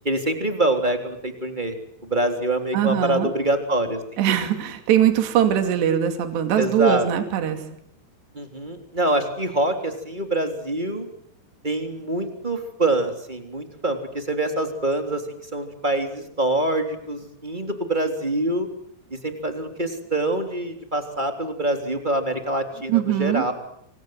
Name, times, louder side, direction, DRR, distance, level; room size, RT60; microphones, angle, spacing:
voice 1, 0.0-1.7 2.0-4.4 6.6-7.1 8.3-11.1 11.6-15.3 15.5-18.7 19.1-23.5, right 1 dB, 10° right, 5 dB, 2.5 m, -25 dB
voice 2, 2.7-3.3 4.2-7.6 22.9-23.4, right 10 dB, 60° right, 7 dB, 4.5 m, -21 dB
30.0 x 25.0 x 7.9 m, 0.72 s
omnidirectional pair, 5.9 m